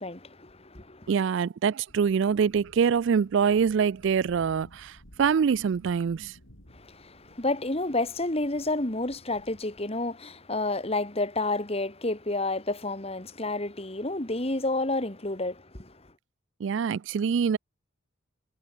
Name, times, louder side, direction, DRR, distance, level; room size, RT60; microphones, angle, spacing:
voice 1, 0.0-1.1 6.7-15.9, left 2 dB, 30° left, 2.0 m, -30 dB
voice 2, 1.1-6.4 16.6-17.6, right 6 dB, 60° right, 0.3 m, -25 dB
sound 1, 1.9-9.9, equal, 75° left, 7.0 m, -56 dB
head